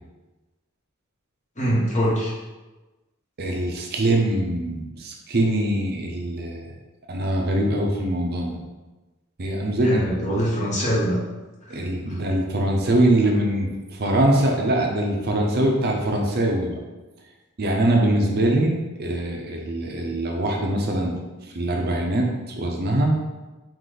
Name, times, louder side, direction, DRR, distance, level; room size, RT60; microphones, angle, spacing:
voice 1, 1.6-2.3 9.8-11.2 11.7-11.8 12.1-12.2, equal, 35° left, -5 dB, 1.2 m, -23 dB
voice 2, 3.4-6.7 7.1-8.6 9.4-10.2 11.7-16.8 17.6-18.7 19.0-21.2 21.4-23.1, right 1 dB, 45° right, 0 dB, 0.6 m, -23 dB
4.8 x 2.5 x 3.9 m, 1.2 s
head